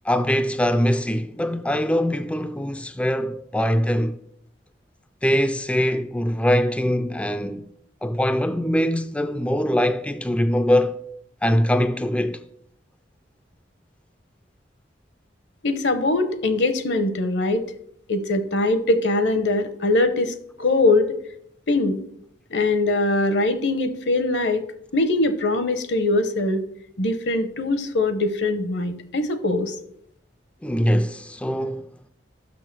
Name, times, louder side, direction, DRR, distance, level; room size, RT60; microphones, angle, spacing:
voice 1, 0.0-4.2 5.2-7.6 8.0-11.0 11.4-12.4 30.6-31.9, equal, 5° left, 0.3 m, -22 dB
voice 2, 15.6-17.6 18.1-21.2 21.7-22.0 22.5-24.6 24.9-26.6 27.0-29.7, left 2 dB, 70° left, 0.9 m, -22 dB
6.2 x 6.2 x 6.0 m
head